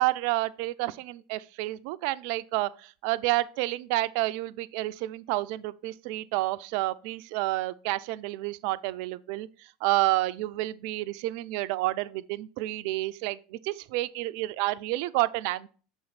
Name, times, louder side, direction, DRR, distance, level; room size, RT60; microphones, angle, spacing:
voice 1, 0.0-15.7, right 18 dB, 65° right, 0.4 m, -29 dB
6.2 x 4.4 x 4.0 m
hypercardioid pair, 85°, 0 cm